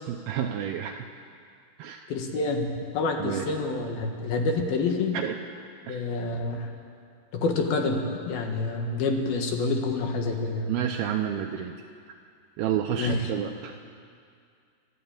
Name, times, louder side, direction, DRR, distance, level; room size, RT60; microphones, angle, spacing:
voice 1, 0.1-1.2 1.8-2.1 3.2-3.5 5.1-5.4 5.9-6.0 10.7-11.8 12.1-12.2 12.6-13.9, right 9 dB, 85° right, 4 dB, 2.3 m, -30 dB
voice 2, 2.1-5.2 5.8-6.7 7.3-8.0 8.3-10.7 13.0-13.2, left 3 dB, 65° left, 3 dB, 3.0 m, -27 dB
30.0 x 11.5 x 8.8 m, 2.3 s
omnidirectional pair, 5.3 m